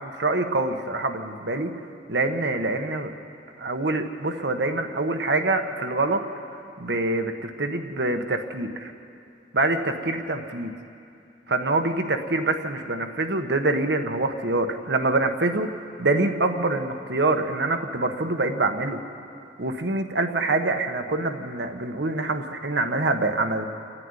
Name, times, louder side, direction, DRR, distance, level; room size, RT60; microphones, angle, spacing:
voice 1, 0.0-1.7 2.1-3.1 3.6-6.2 6.8-8.9 9.5-10.7 11.5-19.0 19.6-23.7, right 2 dB, 80° right, 6 dB, 1.4 m, -25 dB
28.5 x 10.5 x 9.8 m, 2.6 s
head